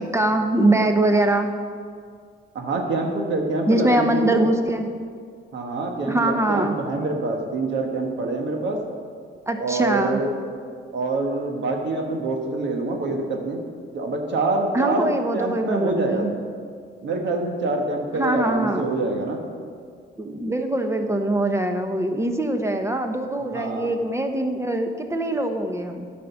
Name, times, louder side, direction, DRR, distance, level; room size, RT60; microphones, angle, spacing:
voice 1, 0.1-1.5 3.7-4.9 6.0-6.8 9.5-10.2 14.7-16.3 18.1-18.8 20.2-26.1, right 1 dB, 15° right, 6 dB, 1.0 m, -23 dB
voice 2, 2.5-4.5 5.5-8.8 9.6-10.3 10.9-13.6 13.9-15.1 15.3-16.4 17.0-19.4 23.5-23.9, right 2 dB, 65° right, 2 dB, 1.4 m, -25 dB
10.5 x 5.2 x 7.2 m, 2.1 s
cardioid pair, 90°, 20 cm